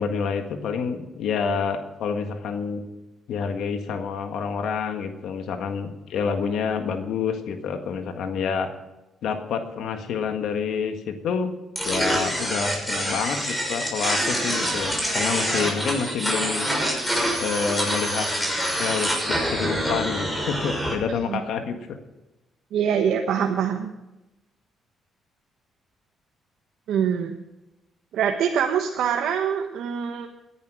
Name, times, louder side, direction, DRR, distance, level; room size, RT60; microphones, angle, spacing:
voice 1, 0.0-2.8 3.3-8.7 9.2-11.6 11.8-16.6 17.4-18.3 18.8-22.0, left 6 dB, 75° left, 6 dB, 1.7 m, -28 dB
sound 1, 11.8-20.9, equal, 10° left, 6.2 m, -26 dB
voice 2, 22.7-23.9 26.9-27.4 28.1-30.3, right 8 dB, 80° right, 3 dB, 1.1 m, -24 dB
18.0 x 11.0 x 4.9 m, 1.0 s
cardioid pair, 90°, 0 cm